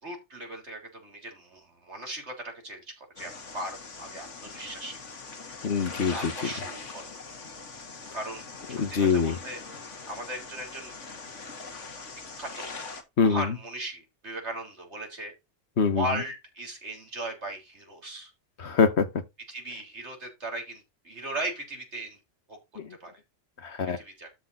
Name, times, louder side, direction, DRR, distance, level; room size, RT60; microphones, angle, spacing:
voice 1, 0.0-4.9 6.1-7.1 8.1-9.6 10.1-11.0 12.4-12.7 13.2-15.3 15.9-18.3 19.5-22.2 22.5-22.6 23.0-23.1 24.0-24.3, right 1 dB, 70° right, 3.7 m, -37 dB
sound 1, 3.2-13.0, left 4 dB, 90° left, 2.0 m, -42 dB
voice 2, 5.6-6.3 8.8-9.4 13.2-13.5 15.8-16.0 18.6-19.1 22.8-23.0 23.6-24.0, left 5 dB, 65° left, 1.5 m, -24 dB
12.5 x 4.2 x 4.2 m
omnidirectional pair, 1.2 m